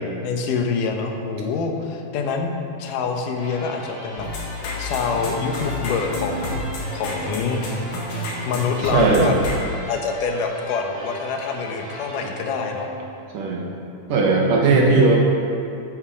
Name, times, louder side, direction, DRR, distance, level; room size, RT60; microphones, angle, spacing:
voice 1, 0.2-2.5 2.8-4.3 4.8-6.6 6.9-7.6 8.5-9.3 9.9-12.9 14.7-14.9, left 5 dB, 90° left, 3 dB, 2.6 m, -25 dB
sound 1, 3.3-13.3, equal, 15° left, 1.7 m, -38 dB
sound 2, 4.2-9.6, left 2 dB, 75° left, 3.1 m, -30 dB
voice 2, 8.9-9.3 13.3-13.6 14.1-15.2, right 3 dB, 85° right, -1 dB, 3.2 m, -17 dB
12.5 x 9.1 x 5.0 m, 2.6 s
omnidirectional pair, 3.6 m